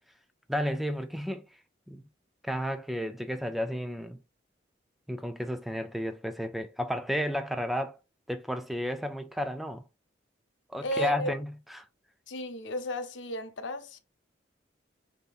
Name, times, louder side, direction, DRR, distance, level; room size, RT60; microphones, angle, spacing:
voice 1, 0.5-1.5 1.9-2.0 2.4-4.2 5.1-8.0 8.3-9.8 10.7-11.9, equal, ahead, 0.3 m, -32 dB
voice 2, 10.8-11.3 12.3-14.0, equal, 80° left, 0.7 m, -34 dB
6.7 x 2.8 x 2.3 m
head